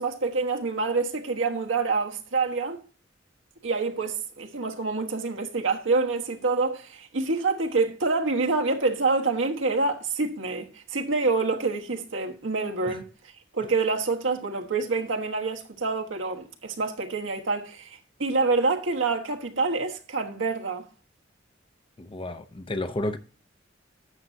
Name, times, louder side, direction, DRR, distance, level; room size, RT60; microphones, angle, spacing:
voice 1, 0.0-2.8 3.6-13.0 13.5-20.9, right 3 dB, 85° right, 1.3 m, -27 dB
voice 2, 22.0-23.2, left 1 dB, 30° left, 0.7 m, -31 dB
11.5 x 7.5 x 2.7 m
head